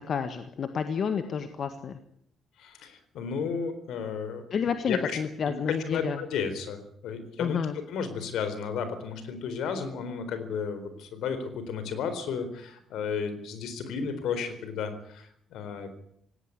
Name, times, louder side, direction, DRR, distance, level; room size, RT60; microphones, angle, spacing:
voice 1, 0.1-2.0 4.5-6.2 7.4-7.8, left 6 dB, 55° left, 9 dB, 1.7 m, -30 dB
voice 2, 2.6-4.4 4.9-5.0 5.5-7.6 7.9-15.9, left 6 dB, 80° left, 10 dB, 4.1 m, -33 dB
17.5 x 17.5 x 9.8 m, 0.69 s
cardioid pair, 90°, 0 cm